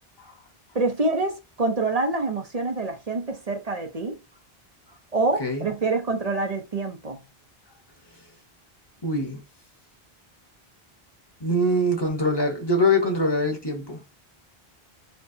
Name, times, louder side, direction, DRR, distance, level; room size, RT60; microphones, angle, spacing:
voice 1, 0.7-4.2 5.1-7.2, right 3 dB, 40° right, 0.8 m, -26 dB
voice 2, 9.0-9.4 11.4-14.0, left 1 dB, 25° left, 1.1 m, -23 dB
4.4 x 2.9 x 2.7 m
omnidirectional pair, 1.0 m